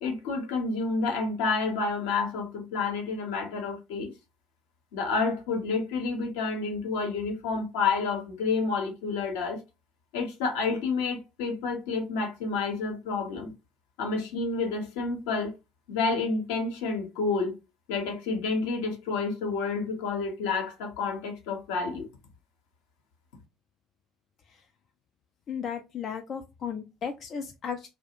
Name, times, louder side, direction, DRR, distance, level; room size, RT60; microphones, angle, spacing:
voice 1, 0.0-4.1 4.9-9.6 10.1-13.5 14.0-15.5 15.9-17.6 17.9-22.0, left 4 dB, 75° left, 0.8 m, -29 dB
voice 2, 25.5-27.9, left 7 dB, 45° left, 0.3 m, -35 dB
2.3 x 2.0 x 2.8 m
hypercardioid pair, 60°, 0 cm